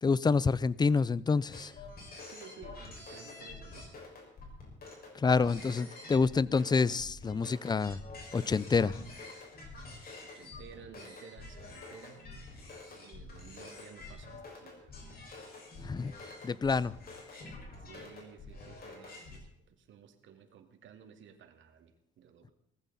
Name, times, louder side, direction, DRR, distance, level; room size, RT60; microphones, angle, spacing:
voice 1, 0.0-1.7 5.1-8.0 8.3-9.0 15.8-17.0, left 4 dB, 20° left, 0.5 m, -28 dB
sound 1, 1.5-19.4, left 3 dB, 50° left, 5.9 m, -47 dB
voice 2, 2.3-3.9 10.2-12.3 12.9-14.9 17.8-22.5, right 7 dB, 70° right, 2.5 m, -54 dB
19.0 x 15.0 x 4.2 m
cardioid pair, 110°, 20 cm